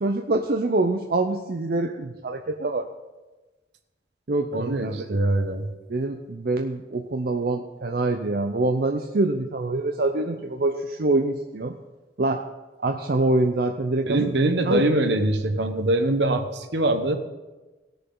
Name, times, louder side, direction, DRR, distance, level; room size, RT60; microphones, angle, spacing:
voice 1, 0.0-2.9 4.3-5.0 5.9-11.8 12.2-12.4 12.8-14.3 14.7-14.8, right 2 dB, 55° right, 3 dB, 0.6 m, -25 dB
voice 2, 4.5-5.7 14.0-17.2, right 1 dB, 70° right, 7 dB, 1.0 m, -23 dB
18.0 x 6.8 x 3.9 m, 1.1 s
head